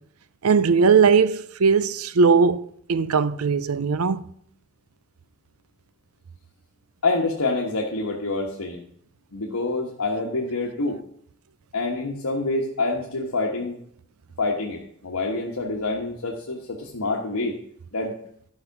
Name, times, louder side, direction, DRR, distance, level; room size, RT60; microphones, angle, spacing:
voice 1, 0.4-2.6 2.9-4.2, right 5 dB, 75° right, 0.6 m, -19 dB
voice 2, 7.0-8.8 9.3-11.0 11.7-13.8 14.4-17.5 17.9-18.2, left 3 dB, 90° left, 1.4 m, -26 dB
12.0 x 5.8 x 5.9 m
head